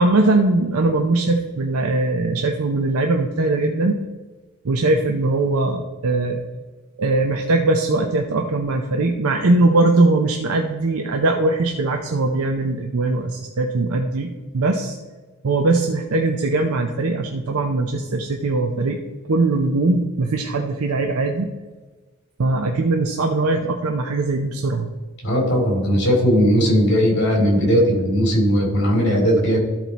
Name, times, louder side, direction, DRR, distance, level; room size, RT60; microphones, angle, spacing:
voice 1, 0.0-4.0 4.6-6.4 7.0-15.0 15.4-19.0 19.3-21.5 22.4-24.9, right 2 dB, 90° right, 4 dB, 0.6 m, -20 dB
voice 2, 25.2-29.6, equal, 55° left, 0 dB, 2.9 m, -18 dB
13.0 x 4.4 x 4.1 m, 1.3 s
head